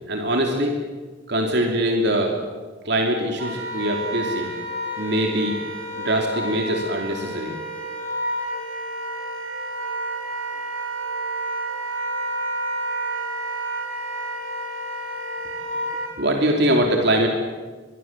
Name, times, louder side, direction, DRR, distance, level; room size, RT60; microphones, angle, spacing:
voice 1, 0.1-0.8 1.3-2.4 2.8-4.5 5.0-5.6 6.0-7.5 16.2-17.3, right 1 dB, 60° right, 2 dB, 3.0 m, -22 dB
Wind instrument woodwind instrument, 3.4-16.1, right 1 dB, 90° right, 6.9 m, -30 dB
25.0 x 21.5 x 7.5 m, 1.4 s
head